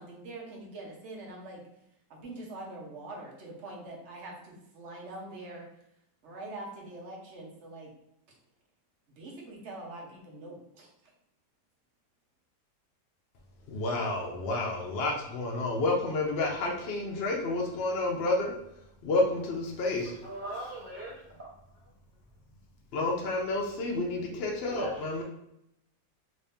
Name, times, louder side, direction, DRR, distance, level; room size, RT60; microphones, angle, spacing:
voice 1, 0.0-1.6 2.1-5.7 6.2-7.9 9.2-10.9, right 2 dB, 50° right, -1 dB, 1.0 m, -44 dB
voice 2, 13.7-18.5 19.0-20.1 22.9-25.2, left 2 dB, 70° left, 0 dB, 0.5 m, -30 dB
voice 3, 20.2-21.1 24.6-25.2, right 1 dB, 65° right, -7 dB, 0.4 m, -38 dB
3.2 x 2.7 x 3.4 m, 0.79 s
omnidirectional pair, 1.9 m